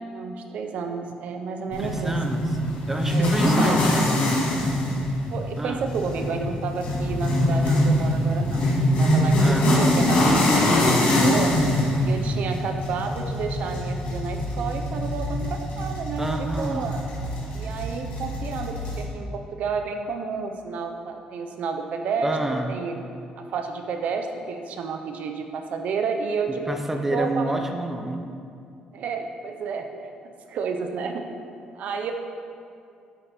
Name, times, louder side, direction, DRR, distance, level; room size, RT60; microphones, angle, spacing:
voice 1, 0.1-2.1 3.1-3.9 5.3-9.4 9.7-11.6 12.0-17.0 17.5-22.3 22.7-23.0 23.4-26.7 27.1-27.6 28.9-31.2 31.8-32.1, right 5 dB, 60° right, 5 dB, 0.6 m, -31 dB
sound 1, 1.7-19.0, left 1 dB, 65° left, 1.5 m, -23 dB
voice 2, 1.8-2.5 2.9-4.0 5.6-5.9 9.4-10.2 16.2-17.0 22.2-22.8 26.7-28.3, right 1 dB, 10° right, 4 dB, 0.5 m, -28 dB
8.9 x 4.2 x 3.4 m, 2.4 s
cardioid pair, 125°, 3 cm